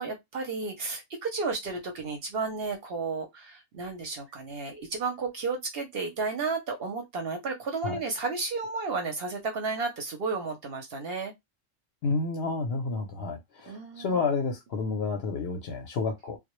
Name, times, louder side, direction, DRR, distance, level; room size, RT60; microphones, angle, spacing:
voice 1, 0.0-11.3 13.7-14.2, right 4 dB, 60° right, 0.7 m, -33 dB
voice 2, 12.0-16.4, left 4 dB, 65° left, 0.7 m, -30 dB
2.1 x 2.0 x 2.9 m
omnidirectional pair, 1.3 m